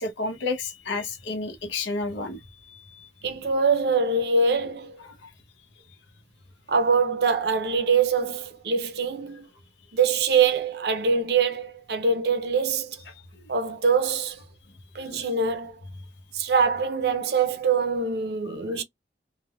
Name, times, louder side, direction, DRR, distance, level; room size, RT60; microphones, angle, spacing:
voice 1, 0.0-3.1 5.0-5.3 15.0-15.1 18.7-18.8, left 3 dB, 90° left, 0.7 m, -32 dB
voice 2, 3.2-5.0 6.7-9.5 9.9-13.0 13.5-14.4 14.9-15.8 16.3-18.8, right 5 dB, 65° right, 0.5 m, -24 dB
3.2 x 2.1 x 2.3 m
head